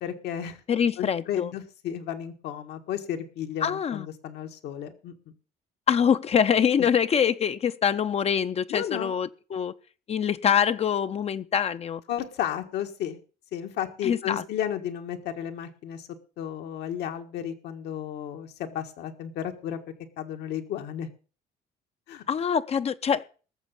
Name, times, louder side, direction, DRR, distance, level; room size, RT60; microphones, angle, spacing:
voice 1, 0.0-0.6 1.0-5.1 8.7-9.1 12.1-13.2 13.5-16.1 16.4-19.8 20.2-21.1 22.1-22.2, left 10 dB, 80° left, 6 dB, 1.6 m, -33 dB
voice 2, 0.7-1.5 3.6-4.1 5.9-9.7 10.1-12.0 14.0-14.4 22.3-23.2, left 7 dB, 40° left, 11 dB, 0.6 m, -24 dB
18.5 x 7.2 x 5.5 m, 0.39 s
cardioid pair, 110°, 17 cm